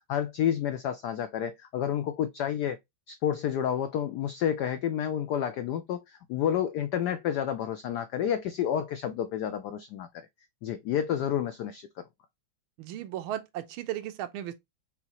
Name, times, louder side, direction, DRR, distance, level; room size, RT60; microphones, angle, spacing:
voice 1, 0.1-2.8 3.1-10.1 10.6-11.9, left 9 dB, 85° left, 0.9 m, -30 dB
voice 2, 12.8-14.5, right 12 dB, 80° right, 1.5 m, -35 dB
5.6 x 2.9 x 2.9 m
omnidirectional pair, 2.3 m